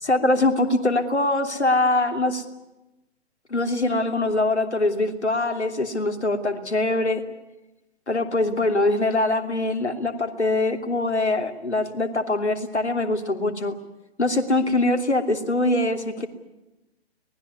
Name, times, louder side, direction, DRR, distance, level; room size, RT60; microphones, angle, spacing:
voice 1, 0.0-2.4 3.5-7.2 8.1-13.7 14.2-16.3, left 2 dB, 75° left, 6 dB, 3.1 m, -23 dB
23.5 x 19.5 x 9.6 m, 0.98 s
figure-of-eight pair, 135°, 34 cm